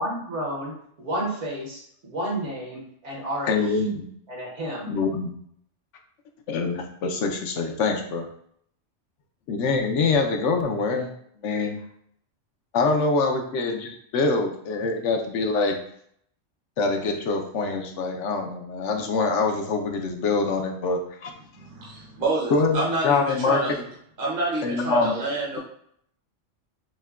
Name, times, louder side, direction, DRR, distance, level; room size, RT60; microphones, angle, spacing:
voice 1, 0.0-3.5 3.8-4.0 4.3-4.9, right 1 dB, 65° right, -3 dB, 1.4 m, -31 dB
voice 2, 3.5-4.0 4.9-5.3 6.5-8.3 9.5-11.1 11.4-11.8 12.7-15.8 16.8-21.3 22.5-23.8 24.6-25.1, left 4 dB, 75° left, 4 dB, 0.9 m, -24 dB
voice 3, 21.6-23.8 24.2-25.6, right 2 dB, 45° right, -4 dB, 0.9 m, -28 dB
6.4 x 2.1 x 2.3 m, 0.68 s
omnidirectional pair, 1.3 m